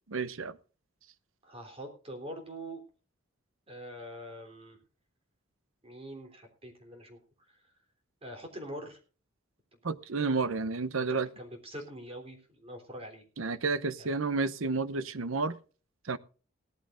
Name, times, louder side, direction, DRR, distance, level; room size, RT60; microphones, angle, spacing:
voice 1, 0.1-0.6 9.8-11.3 13.4-15.6 16.0-16.2, right 4 dB, 75° right, 0.8 m, -31 dB
voice 2, 1.4-2.8 3.7-4.8 5.8-7.2 7.5-7.6 8.2-9.0 10.1-10.3 11.1-13.2 14.0-14.2, right 1 dB, 30° right, 3.5 m, -44 dB
18.0 x 14.0 x 2.6 m
head